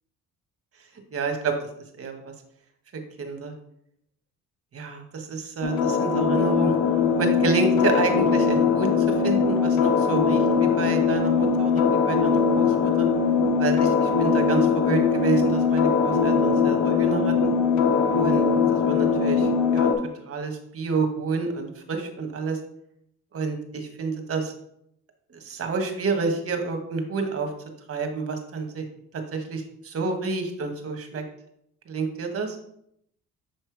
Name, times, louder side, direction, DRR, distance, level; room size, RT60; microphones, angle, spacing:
voice 1, 1.1-1.5 2.0-2.2 2.9-3.5 4.7-6.8 7.2-13.1 13.6-17.5 18.1-18.5 18.8-19.9 20.3-22.6 23.3-24.5 25.3-27.5 27.9-28.8 29.3-31.2 31.9-32.6, right 4 dB, 50° right, 5 dB, 1.2 m, -29 dB
sound 1, 5.6-19.9, left 5 dB, 75° left, 0.8 m, -21 dB
6.6 x 3.2 x 4.6 m, 0.73 s
cardioid pair, 90°, 30 cm